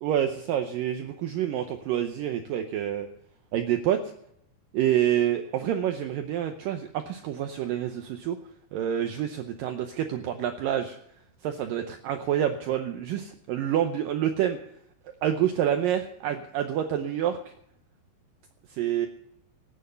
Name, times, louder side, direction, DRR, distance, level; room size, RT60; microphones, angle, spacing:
voice 1, 0.0-3.1 3.5-4.0 4.7-8.4 8.7-11.0 11.4-14.6 15.2-17.5 18.7-19.1, right 10 dB, 85° right, 6 dB, 2.0 m, -27 dB
18.0 x 9.1 x 6.7 m, 0.72 s
omnidirectional pair, 5.0 m